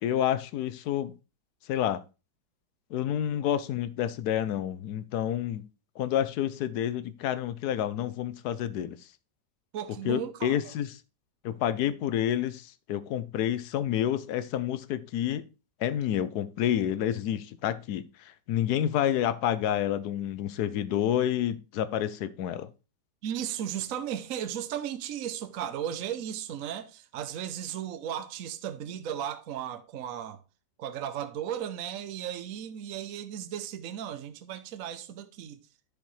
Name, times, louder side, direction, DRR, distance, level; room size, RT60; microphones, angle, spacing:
voice 1, 0.0-1.1 1.7-2.0 2.9-5.7 6.0-9.0 10.0-10.9 11.4-15.5 15.8-22.7, left 10 dB, 70° left, 1.1 m, -29 dB
voice 2, 9.7-10.6 23.2-30.4 30.8-35.6, right 10 dB, 60° right, 1.0 m, -35 dB
10.0 x 6.4 x 3.2 m
omnidirectional pair, 1.9 m